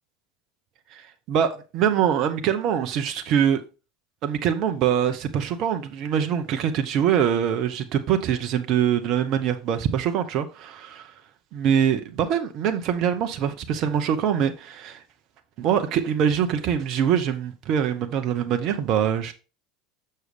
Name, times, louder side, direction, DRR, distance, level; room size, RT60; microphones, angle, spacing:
voice 1, 0.9-3.6 4.2-11.1 11.5-15.0 15.6-19.3, right 8 dB, 50° right, 0.8 m, -24 dB
6.6 x 6.3 x 3.2 m
hypercardioid pair, 80°, 0 cm